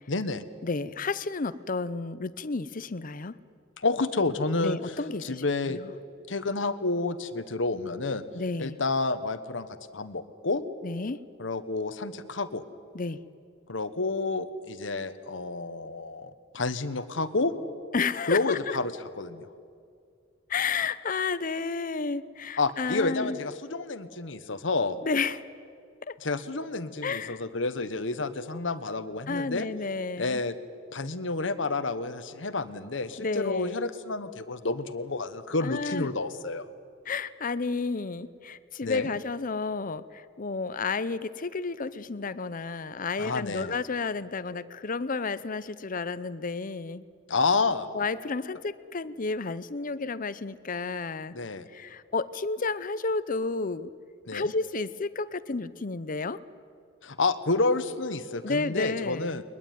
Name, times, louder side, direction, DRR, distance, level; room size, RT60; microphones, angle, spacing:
voice 1, 0.1-0.4 3.8-4.8 5.2-5.8 6.3-8.2 8.6-10.6 11.4-12.6 13.7-17.5 18.3-19.5 22.6-25.0 26.2-29.7 30.2-30.5 30.9-36.7 38.8-39.1 43.2-43.7 47.3-47.9 51.3-51.7 54.3-54.5 57.0-59.4, left 3 dB, 75° left, 11 dB, 1.2 m, -29 dB
voice 2, 0.6-3.4 4.6-5.9 8.3-8.8 10.8-11.2 12.9-13.2 17.9-18.8 20.5-23.4 25.0-25.4 26.1-26.2 27.0-27.4 29.3-30.4 33.2-33.8 35.6-36.1 37.0-47.0 47.9-51.3 51.7-53.9 54.3-56.4 58.4-59.4, left 4 dB, 45° left, 15 dB, 0.7 m, -31 dB
21.5 x 21.0 x 9.2 m, 2.3 s
head